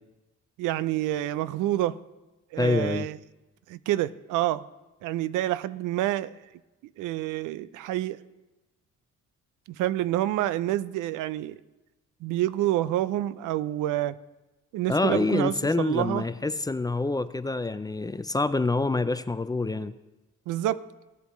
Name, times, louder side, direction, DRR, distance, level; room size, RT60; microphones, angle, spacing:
voice 1, 0.6-2.0 2.5-3.2 3.7-4.7 5.0-6.4 7.0-8.2 9.7-11.6 12.2-14.2 14.7-16.3 20.5-20.9, right 14 dB, 85° right, 17 dB, 0.5 m, -28 dB
voice 2, 2.6-3.1 14.9-19.9, left 3 dB, 15° left, 13 dB, 0.4 m, -26 dB
17.0 x 8.2 x 3.1 m, 1.1 s
cardioid pair, 90°, 30 cm